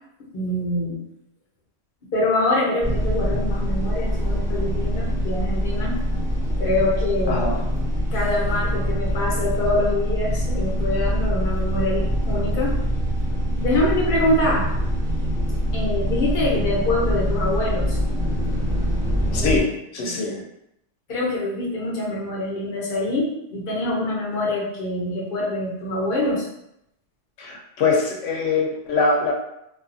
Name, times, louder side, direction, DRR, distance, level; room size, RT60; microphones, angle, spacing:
voice 1, 0.3-1.0 2.1-5.9 6.6-7.4 8.1-12.8 13.6-14.7 15.7-18.0 19.4-19.6 20.0-20.2 21.1-26.5, left 1 dB, 50° left, -4 dB, 0.9 m, -25 dB
sound 1, 2.8-19.6, equal, 35° right, 1.3 m, -24 dB
voice 2, 7.3-7.6 19.3-20.4 27.4-29.3, left 4 dB, 85° left, 0 dB, 0.9 m, -23 dB
2.6 x 2.4 x 2.5 m, 0.80 s
omnidirectional pair, 1.2 m